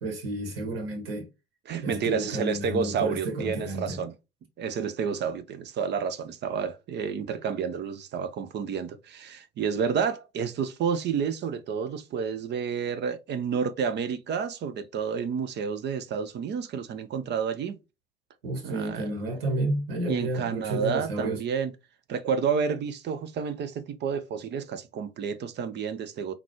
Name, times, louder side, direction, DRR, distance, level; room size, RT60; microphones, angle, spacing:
voice 1, 0.0-1.3 1.8-4.0 18.4-21.4, right 1 dB, 75° right, 1.1 m, -31 dB
voice 2, 1.7-4.1 4.6-17.8 18.6-19.1 20.1-21.7 22.1-26.3, right 6 dB, 35° right, 0.6 m, -30 dB
3.8 x 2.3 x 3.0 m
figure-of-eight pair, 65°, 30 cm